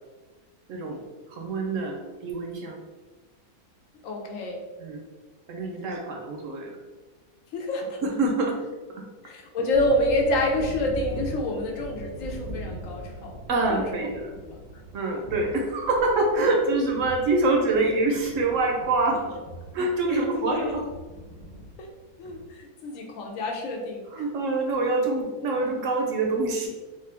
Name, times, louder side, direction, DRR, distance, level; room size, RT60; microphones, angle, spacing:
voice 1, 0.7-1.0 1.3-2.8 4.8-5.0 5.5-6.7 8.0-8.6 9.0-9.1 13.5-14.2 14.9-19.2 19.7-20.8 24.1-26.7, right 2 dB, 70° right, 1 dB, 0.9 m, -25 dB
voice 2, 4.0-4.6 7.5-8.0 9.2-13.4 13.7-14.1 14.4-14.6 16.5-16.6 20.1-20.7 21.8-21.9 22.2-24.0, left 1 dB, 70° left, 1 dB, 0.9 m, -28 dB
sound 1, 9.7-22.4, equal, 10° left, 0.4 m, -41 dB
3.5 x 2.5 x 3.3 m, 1.3 s
omnidirectional pair, 1.6 m